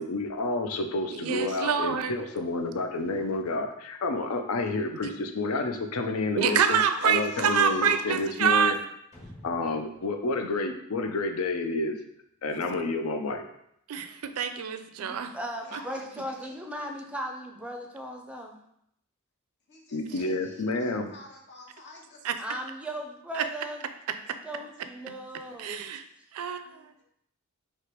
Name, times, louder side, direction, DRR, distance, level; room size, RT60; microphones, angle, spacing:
voice 1, 0.0-6.8 7.0-8.8 9.4-12.0 12.4-13.4 19.9-21.1, left 2 dB, 80° left, 5 dB, 0.5 m, -29 dB
voice 2, 1.1-2.1 5.0-5.1 6.4-8.7 12.5-12.6 13.9-15.3 22.2-22.3 23.4-23.5 25.1-25.2 25.6-26.0 26.3-26.9, right 7 dB, 85° right, 8 dB, 0.4 m, -26 dB
voice 3, 6.4-8.0 15.6-16.6 19.7-22.2 25.5-25.6 26.0-26.2 27.0-27.1, left 2 dB, 55° left, 0 dB, 0.9 m, -43 dB
sound 1, 9.1-11.6, equal, 30° left, 1.4 m, -51 dB
voice 4, 15.0-18.6 22.4-23.8 24.4-25.8, right 1 dB, 5° right, 2 dB, 0.4 m, -37 dB
3.2 x 2.9 x 4.4 m, 0.74 s
head